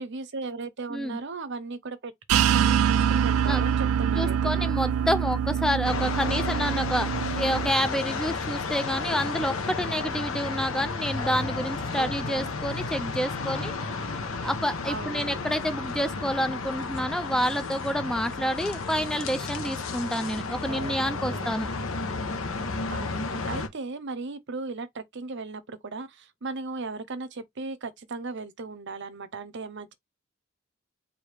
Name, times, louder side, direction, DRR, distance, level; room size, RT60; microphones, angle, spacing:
voice 1, 0.0-4.7 12.0-12.5 14.9-15.4 20.7-21.5 22.9-29.9, right 3 dB, 55° right, 0.7 m, -37 dB
sound 1, 2.3-7.7, right 8 dB, 90° right, 0.3 m, -25 dB
voice 2, 4.1-13.7 14.4-21.7, equal, 5° left, 0.3 m, -28 dB
sound 2, 5.8-23.7, left 4 dB, 70° left, 0.9 m, -32 dB
sound 3, 11.2-16.9, left 3 dB, 35° left, 0.9 m, -43 dB
4.8 x 2.6 x 3.3 m
head